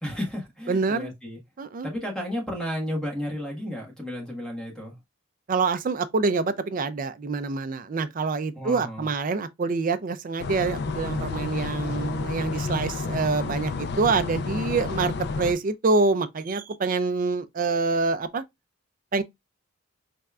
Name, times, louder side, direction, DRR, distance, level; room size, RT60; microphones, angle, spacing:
voice 1, 0.0-1.4 1.8-4.9 8.5-9.1, equal, 5° left, 1.4 m, -32 dB
voice 2, 0.7-1.1 1.6-1.9 5.5-18.4 19.1-19.2, right 4 dB, 40° right, 0.4 m, -26 dB
sound 1, 10.4-15.5, left 4 dB, 55° left, 0.4 m, -30 dB
4.3 x 3.4 x 2.4 m
head